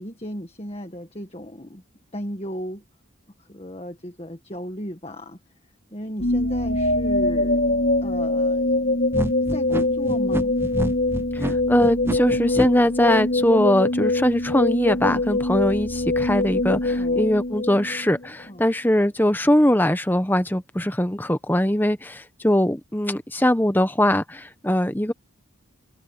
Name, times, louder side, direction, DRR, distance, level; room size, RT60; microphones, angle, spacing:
voice 1, 0.0-1.8 2.1-2.8 3.5-5.4 5.9-7.7 8.0-8.7 9.5-10.5 16.9-17.2 18.5-18.6, equal, 30° left, 1.7 m, -35 dB
sound 1, 6.2-18.3, left 2 dB, 55° left, 3.8 m, -23 dB
sound 2, 9.1-12.7, right 1 dB, 10° right, 0.5 m, -28 dB
voice 2, 11.3-25.1, left 1 dB, 10° left, 1.0 m, -21 dB
head